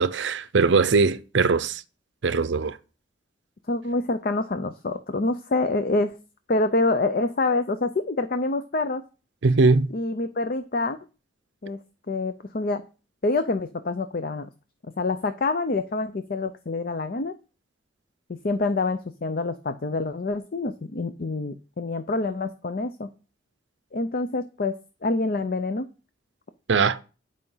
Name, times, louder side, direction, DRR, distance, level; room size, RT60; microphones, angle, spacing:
voice 1, 0.0-1.8 2.2-2.8 9.4-9.9 26.7-27.0, right 4 dB, 70° right, 0.6 m, -21 dB
voice 2, 3.7-6.1 6.5-9.0 9.9-11.0 11.6-11.8 12.1-12.8 13.2-14.5 15.0-17.3 18.3-23.1 23.9-25.9, left 2 dB, 50° left, 0.6 m, -26 dB
10.0 x 5.0 x 5.6 m
head